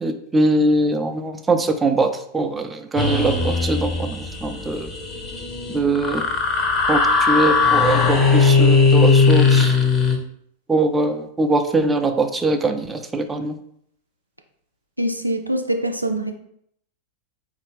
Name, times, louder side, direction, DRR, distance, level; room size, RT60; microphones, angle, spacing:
voice 1, 0.0-4.9 5.7-6.3 6.9-9.8 10.7-13.6, right 2 dB, 10° right, 6 dB, 0.3 m, -22 dB
sound 1, 3.0-10.2, left 4 dB, 25° left, 0.6 m, -18 dB
voice 2, 15.0-16.3, right 1 dB, 85° right, 4 dB, 0.4 m, -24 dB
3.9 x 2.5 x 3.5 m, 0.70 s
figure-of-eight pair, 90°, 0 cm